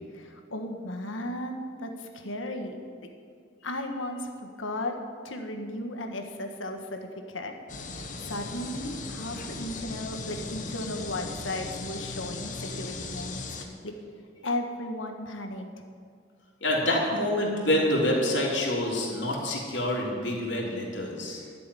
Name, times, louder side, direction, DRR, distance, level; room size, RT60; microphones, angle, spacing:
voice 1, 0.1-2.8 3.6-5.0 5.2-7.5 8.2-13.9 14.4-15.7 21.3-21.5, left 1 dB, 90° left, 4 dB, 1.5 m, -35 dB
sound 1, 7.7-13.6, left 3 dB, 40° left, 1.2 m, -37 dB
voice 2, 16.6-21.4, left 1 dB, 70° left, -4 dB, 3.3 m, -27 dB
12.5 x 6.9 x 10.0 m, 2.2 s
head